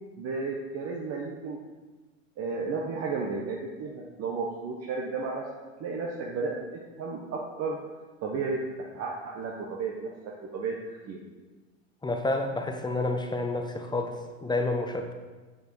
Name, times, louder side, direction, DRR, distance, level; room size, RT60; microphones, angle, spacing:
voice 1, 0.2-1.6 2.4-5.5 5.8-7.8 8.2-8.7 8.9-11.2, right 4 dB, 40° right, -1 dB, 1.2 m, -33 dB
voice 2, 12.0-15.1, left 2 dB, 10° left, 4 dB, 0.9 m, -29 dB
8.2 x 6.6 x 4.6 m, 1.3 s
hypercardioid pair, 90°, 40 cm